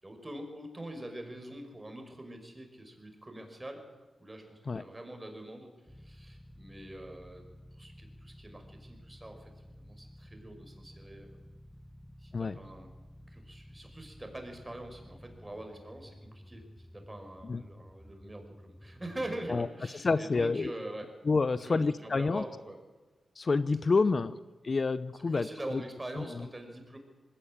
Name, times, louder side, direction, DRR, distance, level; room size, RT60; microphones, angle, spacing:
voice 1, 0.0-3.9 4.2-11.3 12.2-12.9 13.3-21.1 21.5-22.8 24.1-24.2 25.3-27.0, right 1 dB, 20° right, 4 dB, 5.4 m, -44 dB
sound 1, 5.9-19.6, equal, 5° left, 0.8 m, -53 dB
voice 2, 20.0-20.7 21.2-22.4 23.4-24.4 24.6-25.8 26.2-26.5, left 4 dB, 50° left, 15 dB, 0.7 m, -28 dB
20.0 x 17.0 x 8.8 m, 1.2 s
cardioid pair, 55°, 0 cm